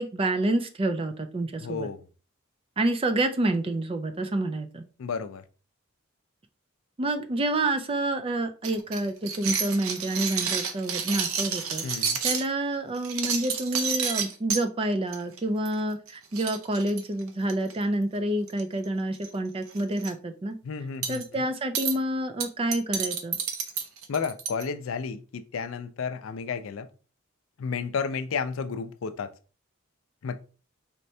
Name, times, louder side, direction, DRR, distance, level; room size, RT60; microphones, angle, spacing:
voice 1, 0.0-1.9 2.8-4.8 7.0-11.8 12.2-20.6 21.1-23.4, right 1 dB, 25° right, 0.4 m, -28 dB
voice 2, 1.6-2.1 5.0-5.4 11.8-12.2 20.6-21.4 24.1-26.9 27.6-29.3 30.2-30.4, left 5 dB, 70° left, 0.4 m, -32 dB
sound 1, 8.6-12.5 13.0-14.6 15.1-15.4 15.6-15.8 16.1-16.2 16.3-17.7 18.5-18.8 19.1-19.3 19.7-20.1 21.0-21.2 21.7-21.9 22.4-24.6, right 6 dB, 80° right, 0.7 m, -30 dB
4.4 x 3.2 x 2.7 m
head